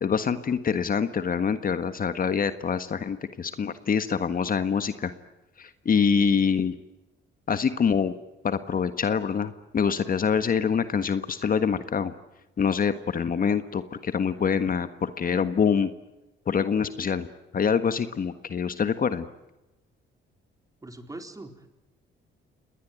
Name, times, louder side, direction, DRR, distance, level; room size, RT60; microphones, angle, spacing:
voice 1, 0.0-5.1 5.6-6.8 7.5-8.1 8.4-12.1 12.6-15.9 16.5-17.3 17.5-19.2, left 6 dB, 45° left, 11 dB, 1.5 m, -25 dB
voice 2, 20.8-21.7, right 2 dB, 15° right, 6 dB, 4.2 m, -41 dB
27.5 x 20.0 x 9.4 m, 0.99 s
cardioid pair, 90°, 20 cm